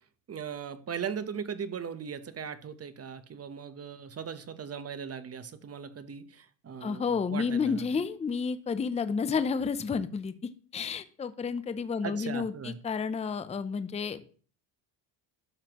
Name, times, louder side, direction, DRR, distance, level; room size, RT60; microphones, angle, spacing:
voice 1, 0.3-7.8 12.0-12.8, right 7 dB, 30° right, 12 dB, 0.9 m, -38 dB
voice 2, 6.8-10.3 10.7-14.2, left 5 dB, 15° left, 13 dB, 0.5 m, -31 dB
12.0 x 5.8 x 3.0 m, 0.42 s
supercardioid pair, 95°, 49 cm